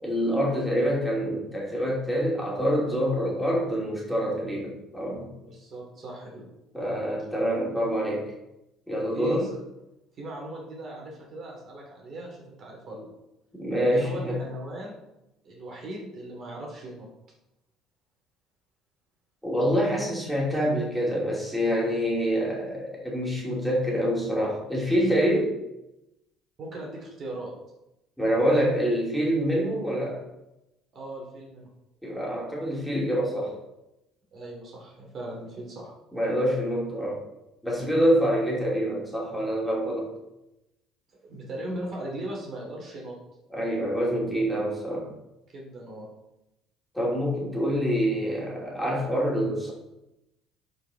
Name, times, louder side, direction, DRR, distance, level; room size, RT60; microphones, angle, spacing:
voice 1, 0.0-5.3 6.7-8.3 8.9-9.5 13.5-14.4 19.4-25.6 28.2-30.2 32.0-33.5 36.1-37.2 37.6-40.1 43.5-45.1 46.9-49.7, equal, ahead, -5 dB, 3.0 m, -26 dB
voice 2, 5.4-6.5 9.1-9.5 10.2-13.1 13.9-15.0 15.4-17.1 26.6-27.5 30.9-31.7 34.3-35.9 41.2-43.2 45.5-46.1, right 1 dB, 45° right, -2 dB, 2.7 m, -38 dB
11.0 x 4.9 x 3.8 m, 0.92 s
cardioid pair, 110°, 0 cm